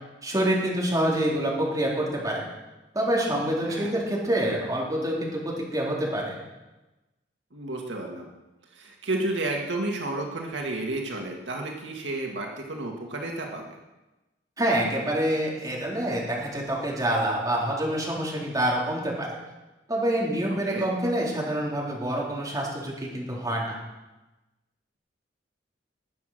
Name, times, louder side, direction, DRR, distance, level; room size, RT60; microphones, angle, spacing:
voice 1, 0.2-2.4 2.9-6.4 14.6-19.3 19.9-23.8, right 1 dB, 20° right, -4 dB, 3.9 m, -26 dB
voice 2, 7.5-8.3 8.7-13.8 20.7-20.9, right 2 dB, 80° right, 1 dB, 1.9 m, -31 dB
20.0 x 7.7 x 6.6 m, 1.1 s
head